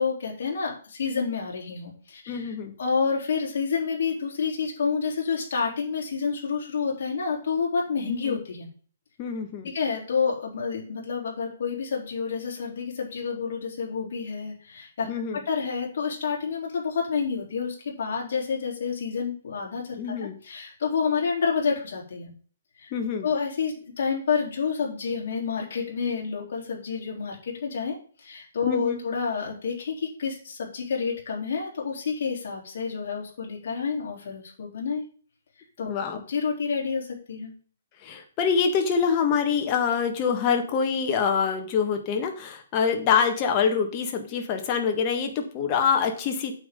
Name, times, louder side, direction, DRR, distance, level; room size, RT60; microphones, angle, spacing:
voice 1, 0.0-8.7 9.7-15.1 15.3-22.3 22.8-22.9 23.2-35.0 35.8-37.5, left 5 dB, 60° left, -1 dB, 3.5 m, -29 dB
voice 2, 2.3-2.7 8.1-8.3 9.2-9.7 15.1-15.4 20.0-20.4 22.9-23.3 28.7-29.0 35.9-36.2 38.0-46.5, left 6 dB, 25° left, 4 dB, 1.6 m, -25 dB
8.9 x 7.3 x 3.8 m, 0.42 s
hypercardioid pair, 160°, 0 cm